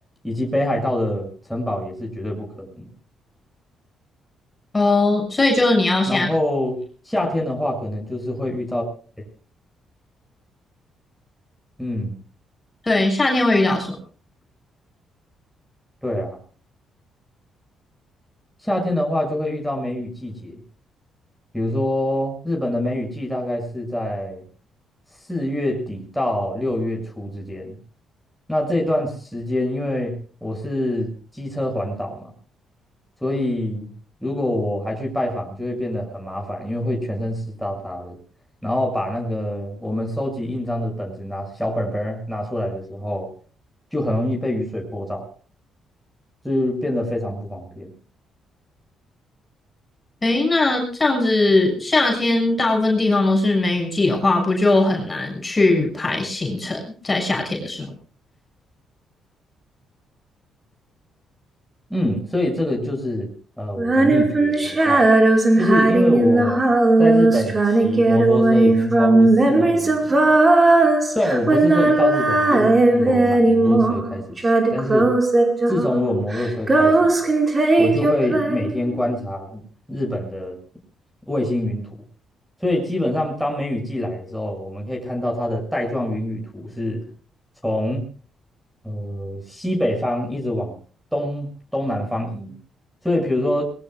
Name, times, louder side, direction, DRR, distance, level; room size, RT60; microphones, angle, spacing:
voice 1, 0.2-2.9 6.1-6.8 7.1-8.9 11.8-12.2 16.0-16.4 18.6-20.6 21.5-24.4 25.3-27.8 28.5-32.3 33.2-33.9 34.2-38.2 38.6-43.3 43.9-45.3 46.4-47.9 61.9-63.3 63.6-65.1 65.6-66.6 67.0-70.2 71.1-74.4 74.7-75.1 75.7-77.2 77.8-79.6 79.9-80.6 81.3-81.9 82.6-87.0 87.6-88.0 88.8-90.8 91.1-92.6 93.0-93.6, left 1 dB, ahead, 0 dB, 7.2 m, -25 dB
voice 2, 4.7-6.3 12.8-14.0 50.2-57.9, left 2 dB, 20° left, 2 dB, 6.6 m, -19 dB
Female singing, 63.8-74.1 74.4-76.0 76.3-79.0, right 2 dB, 25° right, 5.1 m, -17 dB
22.5 x 21.5 x 2.4 m, 0.40 s
cardioid pair, 90°, 0 cm